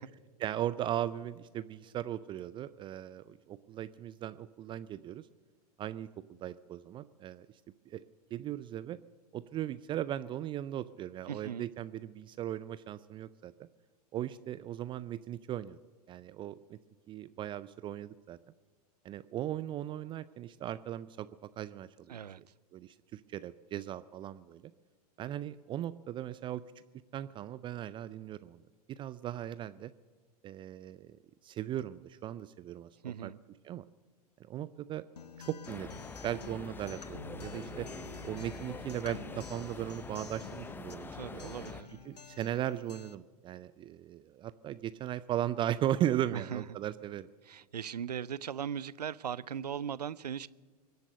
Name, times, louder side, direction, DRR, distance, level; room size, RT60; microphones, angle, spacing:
voice 1, 0.4-5.3 5.8-7.5 7.9-8.0 8.3-9.0 9.3-13.7 14.1-15.8 16.1-16.8 17.1-18.4 19.0-21.3 21.6-22.2 22.7-24.6 25.2-26.6 27.1-28.6 28.9-29.9 30.4-31.2 31.4-33.3 33.6-33.8 34.4-35.0 35.4-35.9 36.2-37.9 38.2-41.4 42.0-47.3, right 12 dB, 25° right, 0.4 m, -37 dB
voice 2, 11.3-11.7 22.1-22.4 33.0-33.4 41.1-41.9 46.3-46.6 47.5-50.5, right 8 dB, 80° right, 0.5 m, -38 dB
Acoustic guitar, 35.2-43.1, left 4 dB, 85° left, 0.7 m, -49 dB
sound 1, 35.7-41.8, left 3 dB, 10° left, 0.7 m, -45 dB
23.5 x 8.2 x 6.7 m
figure-of-eight pair, 95°, 20 cm